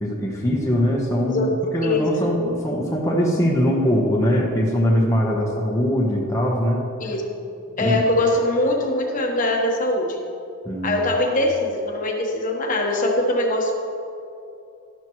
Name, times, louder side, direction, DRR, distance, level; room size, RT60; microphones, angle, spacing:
voice 1, 0.0-6.8 7.8-8.0 10.6-11.0, equal, 15° left, -3 dB, 1.1 m, -21 dB
voice 2, 1.8-2.3 7.0-7.4 7.8-10.2 10.8-13.7, left 1 dB, 40° left, 1 dB, 1.2 m, -22 dB
12.0 x 12.0 x 3.1 m, 2.7 s
head